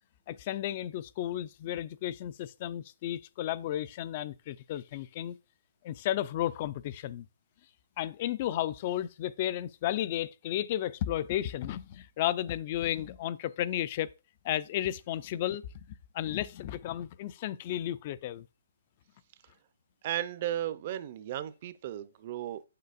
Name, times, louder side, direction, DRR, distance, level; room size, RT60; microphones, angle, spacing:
voice 1, 0.3-5.4 5.8-7.3 8.0-14.1 14.4-15.9 16.1-18.5, left 12 dB, 30° left, 0.3 m, -33 dB
voice 2, 20.0-22.6, right 12 dB, 35° right, 0.5 m, -35 dB
7.6 x 6.6 x 2.4 m
hypercardioid pair, 165°, 0 cm